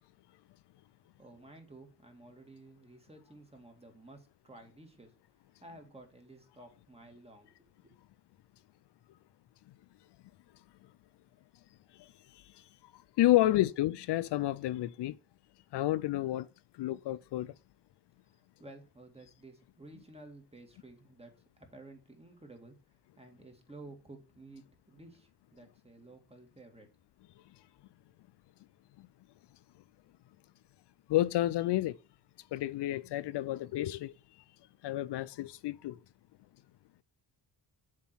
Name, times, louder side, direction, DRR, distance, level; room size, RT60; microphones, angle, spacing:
voice 1, 1.2-5.1 5.6-7.9 13.3-13.6 18.2-26.9, right 2 dB, 15° right, 2.1 m, -53 dB
voice 2, 13.2-15.2 15.7-16.5 16.8-17.5 31.1-32.0 32.5-34.1 34.8-36.0, left 15 dB, 75° left, 0.5 m, -30 dB
7.3 x 3.8 x 6.1 m
cardioid pair, 80°, 41 cm